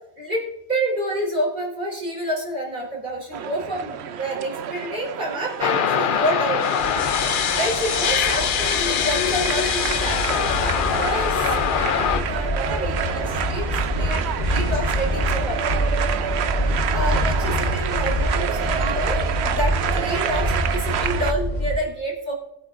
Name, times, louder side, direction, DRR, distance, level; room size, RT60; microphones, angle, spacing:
voice 1, 0.7-6.7 7.6-10.4 10.7-13.7 13.9-15.6 16.9-22.3, right 1 dB, 45° right, -3 dB, 4.0 m, -28 dB
sound 1, 3.3-21.3, right 9 dB, 75° right, 0.9 m, -29 dB
sound 2, 5.6-12.2, left 8 dB, 55° left, 0.7 m, -23 dB
sound 3, 6.8-21.8, equal, 40° left, 1.1 m, -26 dB
21.0 x 8.9 x 2.6 m, 0.88 s
omnidirectional pair, 1.1 m